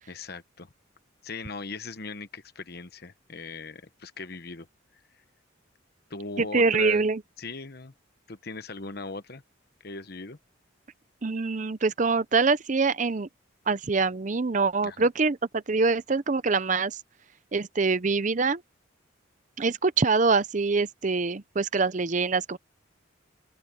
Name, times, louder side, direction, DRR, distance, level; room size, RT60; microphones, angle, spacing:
voice 1, 0.1-0.7 1.2-4.7 6.1-7.0 7.4-7.9 8.3-9.4 9.8-10.4 14.8-15.1, left 3 dB, 50° left, 1.1 m, -39 dB
voice 2, 6.4-7.2 11.2-13.3 13.7-17.0 17.5-18.6 19.6-22.6, right 4 dB, 35° right, 0.6 m, -24 dB
open air
head